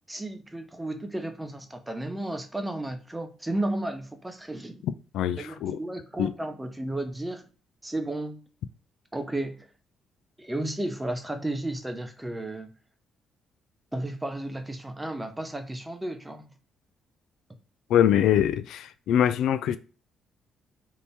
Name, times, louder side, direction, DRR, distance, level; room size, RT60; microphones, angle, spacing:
voice 1, 0.1-4.8 5.4-7.4 7.8-8.4 9.1-9.7 10.4-12.7 13.9-16.4, right 1 dB, 10° right, 0.8 m, -33 dB
voice 2, 4.8-5.8 6.2-6.3 17.9-19.8, left 10 dB, 85° left, 0.3 m, -24 dB
3.4 x 2.8 x 4.2 m
cardioid pair, 90°, 0 cm